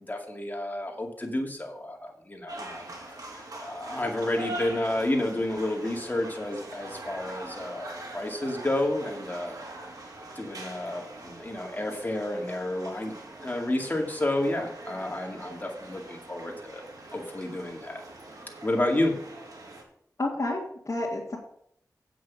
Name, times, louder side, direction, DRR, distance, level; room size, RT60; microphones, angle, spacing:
voice 1, 0.1-2.9 3.6-9.6 10.4-13.1 13.4-16.8 17.1-18.0 18.6-19.1, left 1 dB, 25° left, 1 dB, 2.2 m, -30 dB
sound 1, 2.5-19.8, right 2 dB, 70° right, 2.0 m, -43 dB
voice 2, 20.2-21.4, left 2 dB, 45° left, -6 dB, 2.3 m, -30 dB
8.0 x 6.3 x 7.3 m, 0.69 s
wide cardioid pair, 85°, 7 cm